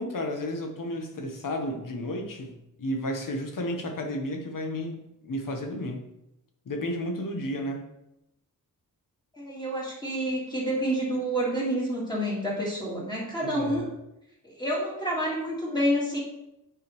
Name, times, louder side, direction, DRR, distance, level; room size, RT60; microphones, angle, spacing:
voice 1, 0.0-6.0 6.7-7.9 13.4-13.8, left 1 dB, 65° left, 4 dB, 1.1 m, -32 dB
voice 2, 9.3-13.9 14.4-16.2, equal, 10° left, -5 dB, 1.8 m, -28 dB
8.0 x 5.0 x 3.1 m, 0.86 s
wide cardioid pair, 175°, 35 cm